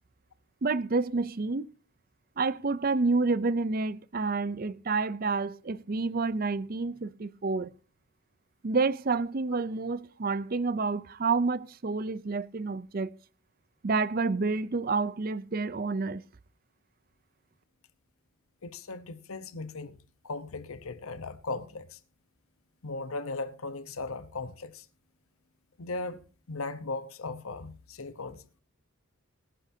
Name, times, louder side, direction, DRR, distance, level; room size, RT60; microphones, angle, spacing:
voice 1, 0.6-1.7 2.4-7.7 8.6-13.1 13.8-16.2, right 4 dB, 40° right, 0.5 m, -29 dB
voice 2, 18.6-20.0 20.2-22.0 22.8-24.8 25.8-26.2 26.5-28.6, left 3 dB, 80° left, 1.0 m, -37 dB
25.5 x 10.0 x 2.8 m
head